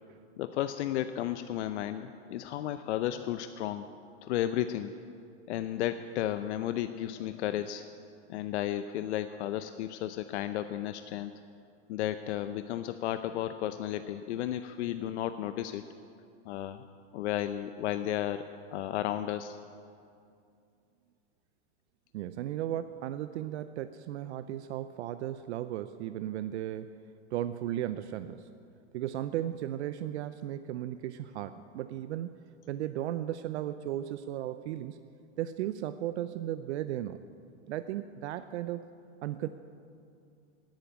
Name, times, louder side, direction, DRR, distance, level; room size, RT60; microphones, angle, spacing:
voice 1, 0.4-3.9 4.2-4.9 5.5-7.8 8.3-11.3 11.9-15.8 16.5-16.9 17.1-19.6, left 12 dB, 70° left, 10 dB, 0.6 m, -33 dB
voice 2, 22.1-26.9 27.3-28.5 28.9-32.4 32.7-35.0 35.4-37.2 37.7-38.9 39.2-39.5, right 12 dB, 70° right, 12 dB, 0.6 m, -35 dB
12.0 x 9.1 x 9.1 m, 2.4 s
supercardioid pair, 145°, 35 cm